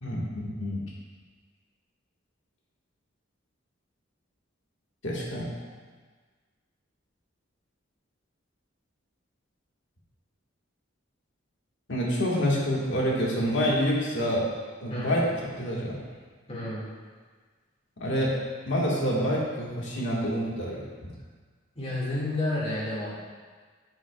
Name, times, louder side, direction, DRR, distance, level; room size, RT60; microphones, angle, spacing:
voice 1, 0.0-0.8 5.0-5.5 11.9-14.5 14.8-16.0 18.0-18.3 18.7-21.1, equal, 65° left, -4 dB, 1.8 m, -27 dB
voice 2, 14.9-15.2 16.5-16.8 21.8-23.2, left 1 dB, 30° left, -6 dB, 2.3 m, -30 dB
9.8 x 7.7 x 2.4 m, 1.5 s
head